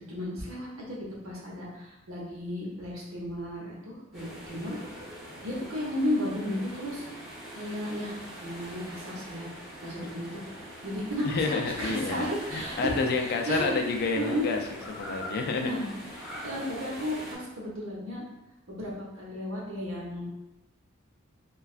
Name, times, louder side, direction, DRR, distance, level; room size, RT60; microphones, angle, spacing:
voice 1, 0.1-4.8 5.4-7.0 7.5-9.5 9.8-10.4 10.8-12.9 13.5-13.8 14.2-14.5 15.6-15.9 16.4-18.2 18.7-20.2, left 1 dB, 90° right, -3 dB, 0.8 m, -34 dB
sound 1, 4.1-17.3, equal, ahead, 0.9 m, -43 dB
voice 2, 11.2-15.7, left 4 dB, 50° left, 3 dB, 0.3 m, -29 dB
3.2 x 2.3 x 2.4 m, 0.93 s
head